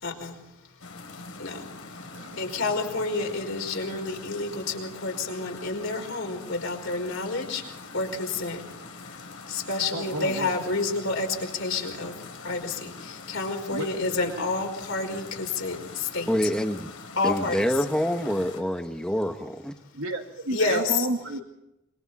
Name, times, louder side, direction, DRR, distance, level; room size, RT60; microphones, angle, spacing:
voice 1, 0.0-0.4 1.4-1.7 2.4-8.6 9.5-16.3 17.2-17.7 20.5-21.1, left 3 dB, 65° left, 1 dB, 5.1 m, -29 dB
sound 1, 0.8-18.6, left 3 dB, 85° left, 3.8 m, -44 dB
voice 2, 9.7-10.5 13.7-13.9 19.9-21.4, right 2 dB, 75° right, 2 dB, 2.0 m, -32 dB
voice 3, 16.3-16.9 17.2-19.7, equal, 5° left, 6 dB, 1.3 m, -26 dB
27.0 x 24.0 x 4.3 m, 0.88 s
head